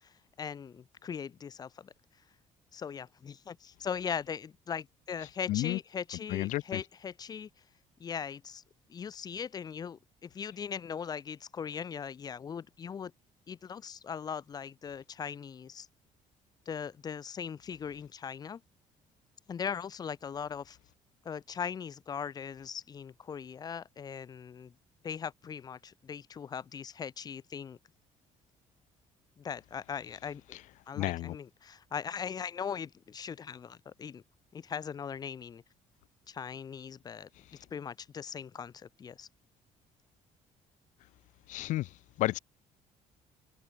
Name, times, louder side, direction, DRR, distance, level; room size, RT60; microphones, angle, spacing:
voice 1, 0.0-1.9 2.7-7.5 8.0-8.6 8.9-13.1 13.5-15.9 16.7-18.6 19.5-20.8 21.3-24.7 25.0-27.8 29.4-30.6 30.9-34.2 34.5-35.6 36.3-37.3 37.7-39.3, left 7 dB, 30° left, 5.2 m, -39 dB
voice 2, 5.5-5.8 6.3-6.8 30.9-31.4 41.5-42.4, left 16 dB, 75° left, 1.7 m, -32 dB
cardioid pair, 170°, 13 cm